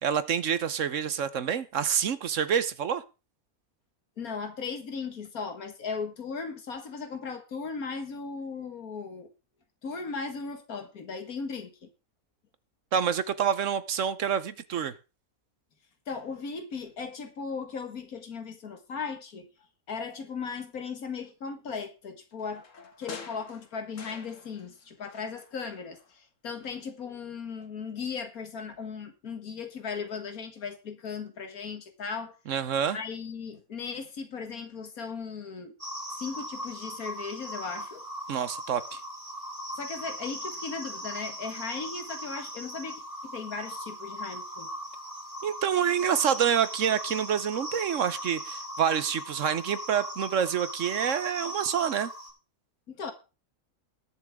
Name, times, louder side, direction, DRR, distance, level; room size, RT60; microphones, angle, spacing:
voice 1, 0.0-3.0 12.9-14.9 32.5-33.0 38.3-39.0 45.4-52.1, right 8 dB, 60° right, 1.1 m, -27 dB
voice 2, 4.2-9.3 9.8-11.9 16.1-19.5 19.9-22.6 23.0-32.4 32.9-35.7 36.2-38.0 39.7-44.7 52.9-53.1, left 5 dB, 75° left, 2.1 m, -37 dB
sound 1, 22.4-24.8 25.1-26.2 26.5-26.6, left 5 dB, 60° left, 1.8 m, -46 dB
sound 2, 35.8-52.3, equal, 30° right, 6.7 m, -39 dB
20.0 x 7.3 x 3.6 m
omnidirectional pair, 1.5 m